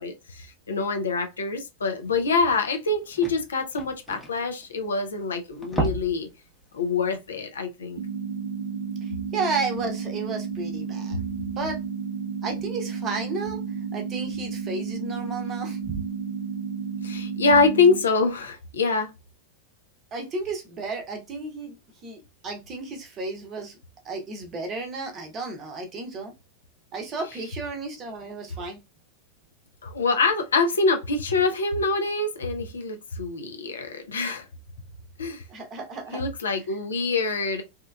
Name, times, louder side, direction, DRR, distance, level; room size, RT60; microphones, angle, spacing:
voice 1, 0.0-6.3 6.7-8.0 17.0-19.1 29.8-34.5 35.2-35.4 36.1-37.6, left 4 dB, 70° left, 0.4 m, -25 dB
sound 1, 2.8-5.1 5.5-6.3 6.6-6.8 7.2-7.3, right 1 dB, 5° left, 0.8 m, -32 dB
sound 2, 8.0-18.0, right 6 dB, 75° right, 0.5 m, -32 dB
voice 2, 9.0-11.2 11.6-11.8 12.4-13.6 13.9-16.0 20.1-21.8 22.0-23.8 24.0-26.3 26.9-28.8 35.5-36.2, right 3 dB, 30° right, 0.7 m, -33 dB
2.8 x 2.2 x 2.2 m
figure-of-eight pair, 90°, 0 cm